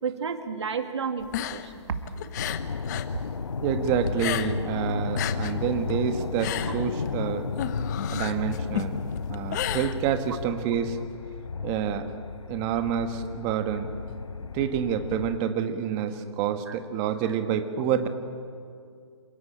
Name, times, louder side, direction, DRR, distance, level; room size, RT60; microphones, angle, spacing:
voice 1, 0.0-2.3 3.1-3.4 6.6-6.7 16.7-16.8, right 5 dB, 65° right, 7 dB, 2.4 m, -32 dB
sound 1, 1.2-3.1 3.4-4.8 5.0-10.5, left 12 dB, 35° left, 1.1 m, -33 dB
sound 2, 2.3-15.4, left 5 dB, 90° left, 0.6 m, -33 dB
voice 2, 3.6-7.5 8.1-9.0 9.3-11.0 11.6-12.0 12.5-13.9 14.5-18.1, right 8 dB, 25° right, 8 dB, 1.5 m, -28 dB
27.0 x 17.0 x 8.9 m, 2.3 s
hypercardioid pair, 140°, 16 cm